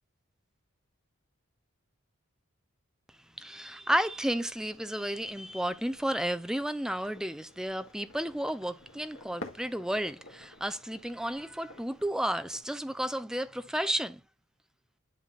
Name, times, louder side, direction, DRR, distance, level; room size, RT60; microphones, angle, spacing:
voice 1, 3.4-14.2, equal, 5° right, 0.4 m, -32 dB
sound 1, 3.9-12.6, left 2 dB, 70° left, 1.8 m, -52 dB
10.5 x 5.6 x 2.4 m
head